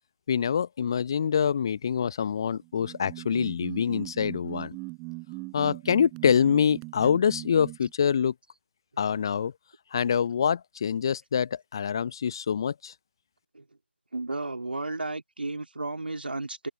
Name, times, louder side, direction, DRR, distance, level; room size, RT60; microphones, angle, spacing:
voice 1, 0.3-4.8 5.5-8.3 9.0-9.5 9.9-12.9, left 7 dB, 20° left, 0.8 m, -25 dB
sound 1, 2.6-7.9, right 29 dB, 10° right, 5.8 m, -40 dB
voice 2, 14.1-16.7, right 2 dB, 60° right, 3.0 m, -33 dB
figure-of-eight pair, 160°, 6 cm